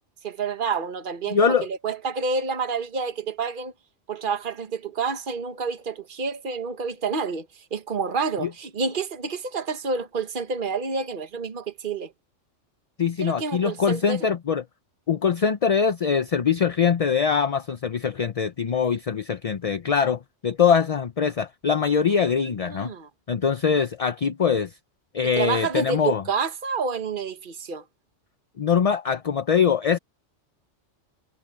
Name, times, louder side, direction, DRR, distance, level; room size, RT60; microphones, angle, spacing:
voice 1, 0.2-3.7 4.1-12.1 13.2-14.3 22.7-23.1 25.3-27.8, right 5 dB, 45° right, 1.5 m, -29 dB
voice 2, 1.3-1.7 8.4-8.5 13.0-14.6 15.1-22.9 23.3-24.7 25.1-26.2 28.6-30.0, left 6 dB, 40° left, 0.6 m, -23 dB
omnidirectional pair, 1.2 m